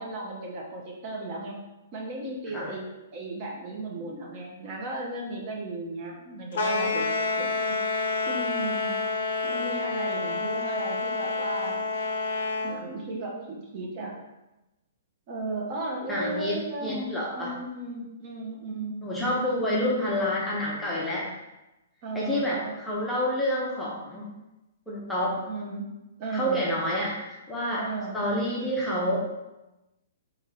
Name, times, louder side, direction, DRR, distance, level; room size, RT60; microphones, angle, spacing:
voice 1, 0.0-1.6 1.9-7.1 7.4-9.0 9.4-11.9 12.6-14.2 15.3-17.1 17.3-19.0 22.0-22.7 25.5-25.9 26.2-26.6 27.8-28.2, right 2 dB, 35° right, -1 dB, 0.7 m, -35 dB
sound 1, 6.5-12.8, left 3 dB, 60° left, 0.5 m, -28 dB
voice 2, 16.1-17.5 19.0-21.3 22.1-24.3 24.9-25.4 26.3-27.8 28.1-29.2, equal, 5° left, -6 dB, 0.6 m, -28 dB
3.0 x 3.0 x 3.7 m, 1.0 s
hypercardioid pair, 160°, 0 cm